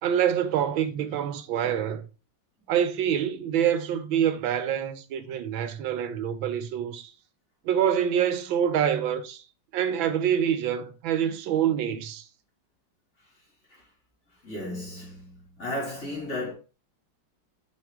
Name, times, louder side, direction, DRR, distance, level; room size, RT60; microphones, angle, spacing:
voice 1, 0.0-2.0 2.7-7.1 7.6-9.4 9.7-12.3, right 9 dB, 80° right, 1.5 m, -26 dB
voice 2, 14.4-16.5, left 1 dB, 35° left, 3.2 m, -34 dB
6.0 x 5.1 x 3.6 m
omnidirectional pair, 2.1 m